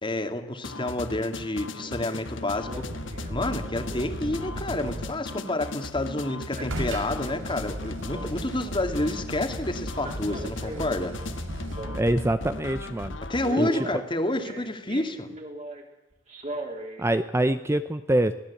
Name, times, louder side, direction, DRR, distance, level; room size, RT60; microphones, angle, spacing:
voice 1, 0.0-2.8 3.3-11.1 13.3-15.3, left 1 dB, 25° left, 7 dB, 2.3 m, -29 dB
sound 1, 0.6-13.6, left 2 dB, 75° left, 1.4 m, -38 dB
Male speech man speaking, 1.2-1.5 1.8-2.3 2.7-5.9 6.3-7.7 7.9-8.8 9.9-12.3 12.8-13.0 13.4-15.8 16.3-17.0 17.5-17.6, right 1 dB, 40° right, 4.0 m, -40 dB
sound 2, 2.6-5.3 6.7-12.3 15.1-15.2, equal, 90° right, 4.9 m, -36 dB
voice 2, 11.9-13.2 13.6-13.7 17.0-18.3, right 1 dB, 15° right, 10 dB, 0.7 m, -24 dB
24.0 x 17.5 x 8.5 m, 0.94 s
head